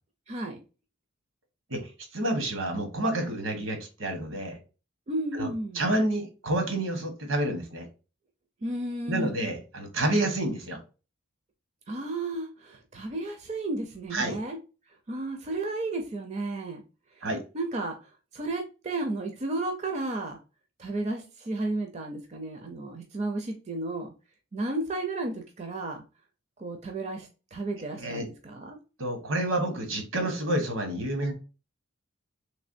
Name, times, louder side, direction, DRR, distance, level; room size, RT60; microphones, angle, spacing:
voice 1, 0.3-0.6 5.1-5.8 8.6-9.4 11.9-14.6 15.1-16.8 17.2-17.3 17.5-18.0 18.3-20.4 20.8-24.1 24.5-26.0 26.6-28.8, right 2 dB, 35° right, 4 dB, 0.5 m, -33 dB
voice 2, 2.1-4.6 5.3-5.5 5.7-7.9 9.1-10.8 14.1-14.4 17.2-17.4 28.0-28.2 29.0-31.3, right 1 dB, 80° right, 5 dB, 1.0 m, -29 dB
3.3 x 3.2 x 2.5 m, 0.32 s
head